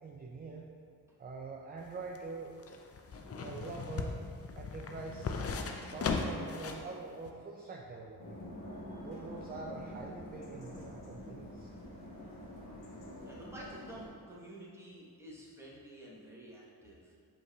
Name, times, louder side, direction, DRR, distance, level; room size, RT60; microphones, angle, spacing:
voice 1, 0.0-0.7 1.2-2.6 3.4-4.1 4.6-5.4 5.8-8.4 9.0-11.7, right 4 dB, 25° right, -1 dB, 0.4 m, -45 dB
sound 1, 1.8-6.9 7.3-7.4, left 4 dB, 40° left, 0.4 m, -37 dB
sound 2, 8.2-14.1, left 1 dB, 65° left, 1.1 m, -47 dB
voice 2, 13.2-17.1, right 1 dB, 5° right, -6 dB, 1.1 m, -50 dB
5.1 x 3.3 x 2.3 m, 2.2 s
supercardioid pair, 45°, 40 cm